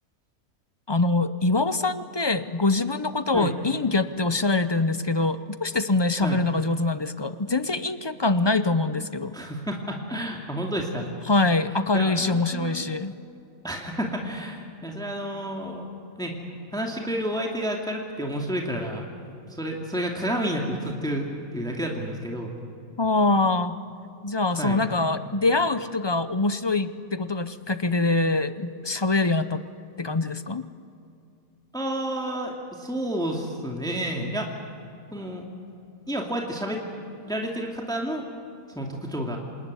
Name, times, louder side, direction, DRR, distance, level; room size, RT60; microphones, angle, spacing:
voice 1, 0.9-9.3 11.3-13.2 23.0-23.8 24.2-29.6 30.0-30.6, left 3 dB, 30° left, 12 dB, 0.5 m, -24 dB
voice 2, 9.3-11.1 11.9-12.8 13.6-15.9 16.2-16.3 16.7-19.0 19.6-22.5 24.6-24.8 31.7-34.5 35.1-35.5 36.1-36.8 37.2-38.2 38.7-39.4, equal, 5° left, 0 dB, 2.4 m, -30 dB
27.5 x 19.5 x 9.6 m, 2.7 s
omnidirectional pair, 1.6 m